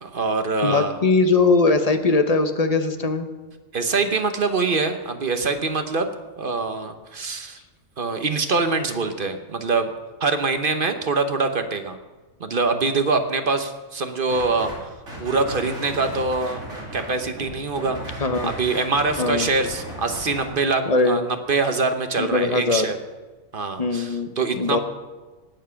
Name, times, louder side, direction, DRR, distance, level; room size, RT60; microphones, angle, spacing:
voice 1, 0.0-0.9 3.7-6.1 6.4-7.6 8.0-9.9 10.2-12.0 12.4-14.9 15.2-16.6 16.9-23.0 23.5-24.8, right 3 dB, 45° right, 7 dB, 1.1 m, -24 dB
voice 2, 0.6-3.3 18.2-18.5 19.2-19.5 20.9-21.3 22.2-22.9 23.8-24.3 24.6-24.8, left 3 dB, 35° left, 8 dB, 0.8 m, -20 dB
sound 1, 14.3-14.8 15.1-20.4, equal, 65° right, 3.1 m, -36 dB
19.0 x 7.4 x 5.7 m, 1.2 s
omnidirectional pair, 1.4 m